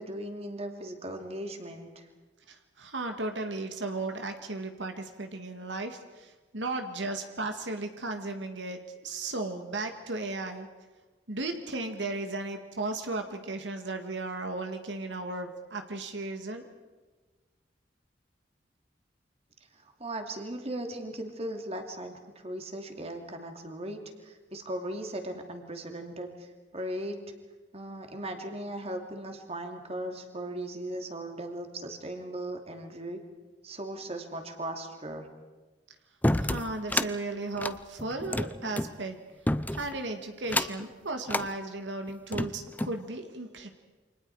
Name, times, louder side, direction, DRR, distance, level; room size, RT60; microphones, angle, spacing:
voice 1, 0.0-2.1 19.7-26.5 26.7-27.2 27.7-33.2 33.6-35.3, right 1 dB, 35° right, 4 dB, 2.8 m, -38 dB
voice 2, 2.5-10.7 11.3-16.7 36.4-39.2 39.7-43.7, right 2 dB, 85° right, 5 dB, 2.0 m, -35 dB
sound 1, 36.2-37.1 37.5-38.9 39.5-40.0 40.4-40.9 41.3-41.5 42.1-43.0, left 1 dB, 10° left, 0.7 m, -29 dB
29.0 x 25.5 x 4.8 m, 1.3 s
head